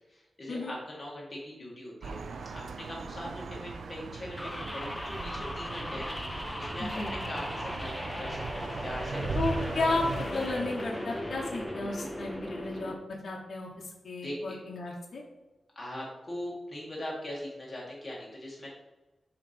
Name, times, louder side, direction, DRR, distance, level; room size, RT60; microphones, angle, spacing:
voice 1, 0.1-2.2 2.5-9.6 14.2-14.6 15.8-18.7, left 1 dB, 20° left, -4 dB, 1.9 m, -41 dB
sound 1, 2.0-10.3, right 4 dB, 75° right, 0.4 m, -39 dB
sound 2, 4.4-12.9, equal, 5° left, 0.6 m, -37 dB
voice 2, 6.8-7.1 9.3-12.9 13.2-13.7 14.0-15.2, left 2 dB, 50° left, -2 dB, 1.0 m, -33 dB
sound 3, 9.2-13.2, left 4 dB, 90° left, 0.4 m, -45 dB
6.9 x 2.9 x 5.1 m, 1.1 s
wide cardioid pair, 180°, 0 cm